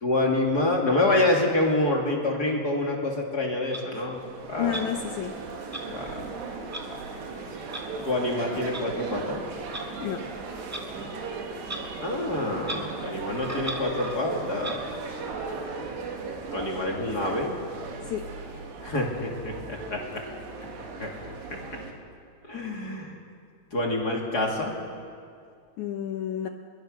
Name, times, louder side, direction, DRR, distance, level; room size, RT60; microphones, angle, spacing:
voice 1, 0.0-4.2 4.5-4.8 5.9-6.2 6.9-7.2 8.0-9.4 12.0-14.8 16.5-17.5 18.8-20.2 21.0-21.3 22.4-23.2 23.7-24.7, left 2 dB, 30° left, -1 dB, 2.5 m, -27 dB
Clock, 3.7-3.8 4.7-4.8 5.7-5.8 6.7-6.8 7.7-7.8 8.7-8.8 9.7-9.9 10.7-10.8 11.6-11.8 12.1-12.2 12.6-12.8 13.3-14.2 14.6-14.8, right 1 dB, 15° right, 0.5 m, -36 dB
sound 1, 4.1-21.9, right 4 dB, 85° right, 4.3 m, -37 dB
voice 2, 4.6-5.4 10.0-10.3 18.0-18.3 25.8-26.5, left 9 dB, 80° left, 5 dB, 1.7 m, -30 dB
25.0 x 22.5 x 6.6 m, 2.3 s
omnidirectional pair, 4.7 m